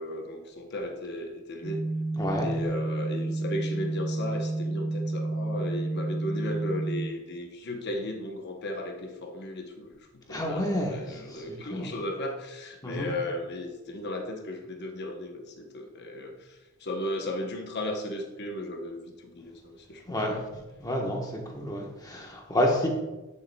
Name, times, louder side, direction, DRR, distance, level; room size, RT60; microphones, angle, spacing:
voice 1, 0.0-1.9 2.4-20.2, left 1 dB, 50° left, 3 dB, 0.8 m, -36 dB
sound 1, 1.6-7.1, right 2 dB, 55° right, 1.0 m, -30 dB
voice 2, 2.2-2.5 10.3-11.2 11.7-11.9 12.8-13.1 20.1-20.4 20.8-21.3 21.5-22.9, left 1 dB, 20° left, 0 dB, 1.1 m, -29 dB
10.0 x 6.6 x 2.2 m, 1.1 s
head